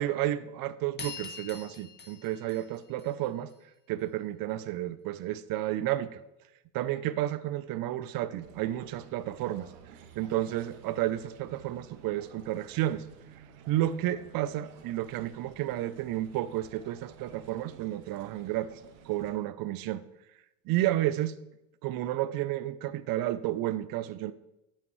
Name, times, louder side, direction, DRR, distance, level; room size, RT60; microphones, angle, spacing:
voice 1, 0.0-3.5 3.9-6.2 6.7-9.7 10.2-13.0 13.7-18.7 19.0-20.0 20.7-21.4 21.8-24.3, right 14 dB, 55° right, 16 dB, 0.7 m, -31 dB
sound 1, 1.0-3.5, left 4 dB, 25° left, 2.1 m, -44 dB
sound 2, 8.4-19.3, right 7 dB, 75° right, 1.3 m, -53 dB
10.0 x 8.6 x 3.2 m, 0.92 s
hypercardioid pair, 75°, 41 cm